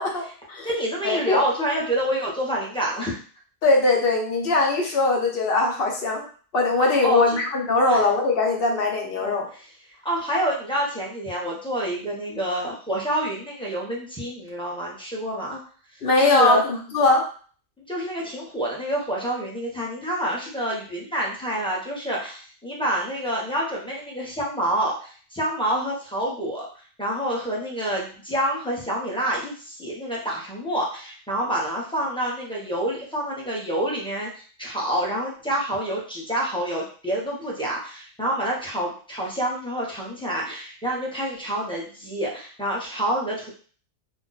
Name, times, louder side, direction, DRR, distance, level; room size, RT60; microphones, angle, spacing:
voice 1, 0.0-0.7 1.0-1.4 3.6-6.2 6.5-9.5 16.0-17.2, left 3 dB, 60° left, 0 dB, 0.9 m, -21 dB
voice 2, 0.6-3.2 7.0-7.4 7.9-8.1 9.2-9.6 10.0-15.6 16.2-16.6 17.9-26.7 27.0-43.5, right 1 dB, 5° left, -5 dB, 0.7 m, -27 dB
2.5 x 2.2 x 3.9 m, 0.42 s
omnidirectional pair, 1.2 m